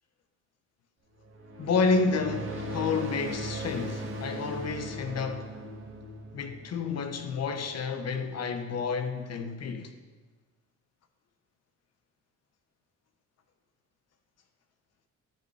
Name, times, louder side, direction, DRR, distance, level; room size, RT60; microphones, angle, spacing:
sound 1, 1.1-7.7, right 1 dB, 45° right, 1.9 m, -39 dB
voice 1, 1.6-5.5 6.3-9.9, left 4 dB, 55° left, 1.1 m, -30 dB
12.5 x 5.5 x 4.7 m
cardioid pair, 90°, 30 cm